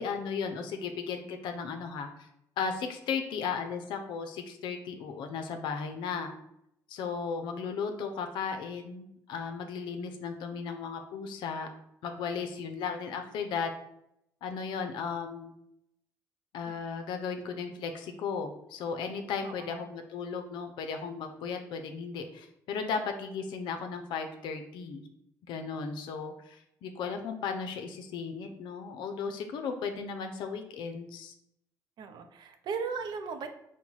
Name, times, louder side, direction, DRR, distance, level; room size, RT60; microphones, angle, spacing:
voice 1, 0.0-2.3 2.6-6.3 6.9-11.7 12.0-13.7 14.4-15.5 16.5-25.0 25.5-31.3, left 5 dB, 75° left, 6 dB, 0.5 m, -35 dB
voice 2, 19.4-19.8 32.0-33.5, right 5 dB, 65° right, 7 dB, 0.5 m, -37 dB
3.9 x 2.1 x 4.5 m, 0.79 s
supercardioid pair, 70°, 8 cm